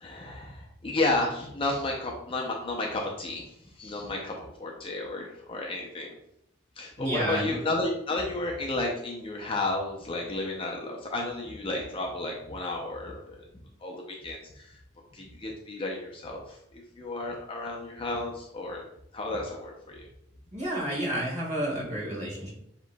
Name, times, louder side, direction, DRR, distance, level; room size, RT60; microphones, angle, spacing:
voice 1, 0.0-3.4 3.8-6.1 6.8-13.4 13.8-14.8 15.1-18.8 19.1-20.0, left 2 dB, 25° left, -1 dB, 0.5 m, -32 dB
voice 2, 7.0-7.6 20.5-22.5, right 1 dB, 35° right, -3 dB, 1.6 m, -30 dB
7.2 x 3.0 x 2.2 m, 0.78 s
head